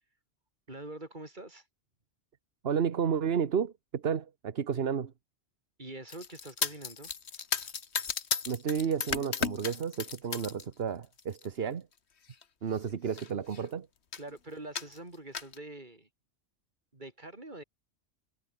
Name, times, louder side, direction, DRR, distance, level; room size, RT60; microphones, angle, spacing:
voice 1, 0.7-1.7 5.8-7.1 14.2-16.1 16.9-17.6, right 2 dB, 40° right, 4.1 m, -45 dB
voice 2, 2.6-5.1 8.5-11.9 12.6-13.9, right 7 dB, 60° right, 1.3 m, -31 dB
sound 1, 6.1-10.6 11.0-11.5 12.3-12.4 12.7-12.8 13.1-13.7 14.1-14.3 14.8-15.6, left 6 dB, 70° left, 1.6 m, -35 dB
omnidirectional pair, 1.2 m